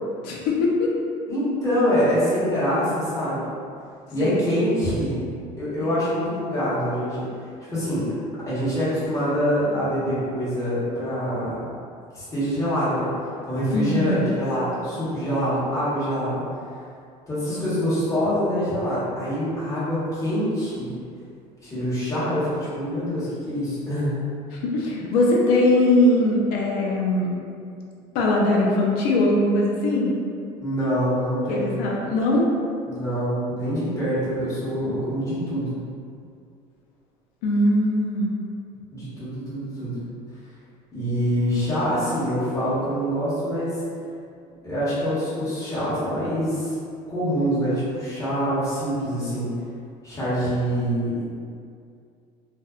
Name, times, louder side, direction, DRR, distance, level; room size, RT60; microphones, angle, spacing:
voice 1, 0.2-0.9 4.2-4.5 5.8-6.0 13.7-14.2 24.5-27.3 28.1-30.2 31.5-32.4 37.4-38.4, left 1 dB, 85° left, -2 dB, 0.5 m, -21 dB
voice 2, 1.3-3.4 4.1-5.2 5.6-7.3 7.7-8.1 8.4-11.6 12.1-13.1 13.5-16.4 17.3-20.9 21.6-24.1 24.8-25.0 30.6-31.8 32.9-35.7 38.9-40.0 40.9-43.8 44.6-46.7 47.1-49.5 50.0-51.3, equal, 20° left, -11 dB, 1.0 m, -25 dB
2.5 x 2.1 x 2.3 m, 2.4 s
cardioid pair, 110°, 15 cm